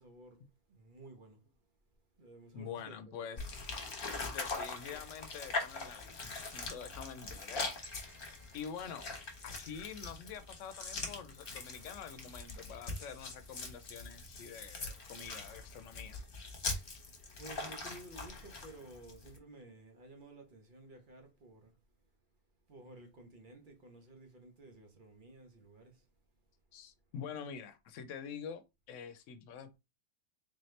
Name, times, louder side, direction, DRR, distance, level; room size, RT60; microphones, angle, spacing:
voice 1, 0.0-1.4 2.2-3.4 16.9-21.7 22.7-26.1, right 2 dB, 45° right, 0.9 m, -54 dB
voice 2, 2.5-3.6 4.1-7.7 8.5-9.1 9.4-16.2 26.7-28.6 28.9-29.8, left 7 dB, 85° left, 0.9 m, -46 dB
sound 1, 3.4-19.4, left 3 dB, 50° left, 1.1 m, -42 dB
sound 2, 7.8-10.0, right 1 dB, 20° right, 1.0 m, -61 dB
3.7 x 2.8 x 3.1 m
omnidirectional pair, 1.3 m